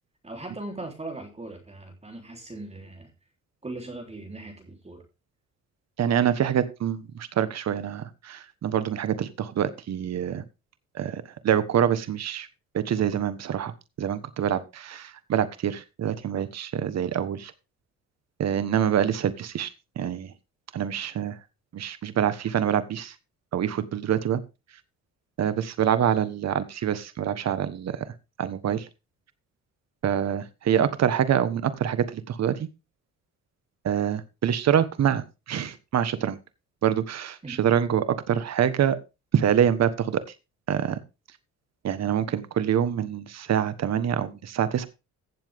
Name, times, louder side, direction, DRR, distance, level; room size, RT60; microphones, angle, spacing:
voice 1, 0.2-3.1 3.6-5.0 37.4-37.6, right 2 dB, 20° right, 3.6 m, -39 dB
voice 2, 6.0-10.4 11.0-12.5 12.7-13.7 14.0-17.5 18.4-19.7 20.0-20.3 20.7-21.3 21.7-23.1 23.5-24.4 25.4-28.0 28.4-28.8 30.0-32.5 33.8-36.4 36.8-39.0 39.3-40.2 40.7-41.0 41.8-44.9, right 9 dB, 60° right, 1.4 m, -25 dB
16.0 x 7.2 x 3.6 m
cardioid pair, 90°, 30 cm